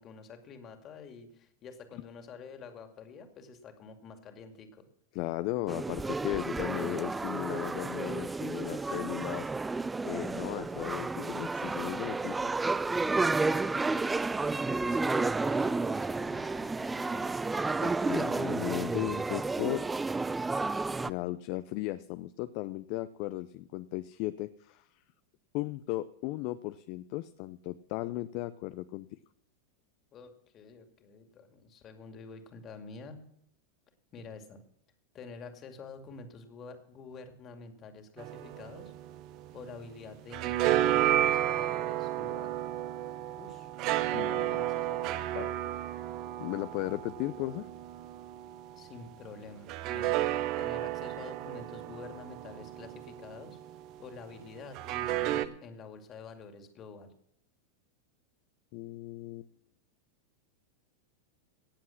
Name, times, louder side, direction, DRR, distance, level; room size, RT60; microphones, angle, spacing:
voice 1, 0.0-4.8 13.4-14.1 14.5-17.4 30.1-33.2 34.1-34.6 35.1-38.9 39.5-42.5 43.4-43.7 43.9-45.3 48.8-50.1 50.6-53.6 54.0-57.1, left 4 dB, 35° left, 6 dB, 2.3 m, -48 dB
voice 2, 5.1-12.4 17.8-19.8 21.0-24.9 25.5-29.2 44.1-44.4 45.3-45.5 46.4-47.7 58.7-59.5, left 17 dB, 55° left, 13 dB, 0.5 m, -36 dB
sound 1, 5.7-21.1, right 3 dB, 10° right, 0.4 m, -31 dB
sound 2, 38.2-39.9 40.1-48.8 49.7-53.8 54.7-55.5, right 13 dB, 45° right, 0.9 m, -32 dB
17.5 x 7.6 x 5.9 m, 0.72 s
hypercardioid pair, 100°, 0 cm